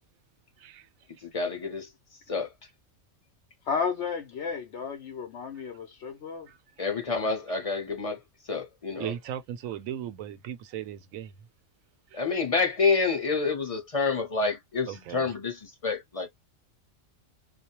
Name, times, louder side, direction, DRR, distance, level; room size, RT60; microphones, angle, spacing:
voice 1, 0.6-0.9 6.5-6.9 7.2-7.3 9.0-11.3 12.1-12.2 14.9-15.3, right 10 dB, 90° right, 1.0 m, -38 dB
voice 2, 1.2-1.9 2.3-2.5 6.8-8.2 8.5-9.1 12.1-16.3, left 4 dB, 35° left, 0.7 m, -28 dB
voice 3, 3.7-6.5, left 6 dB, 65° left, 0.8 m, -32 dB
2.4 x 2.1 x 2.8 m
omnidirectional pair, 1.4 m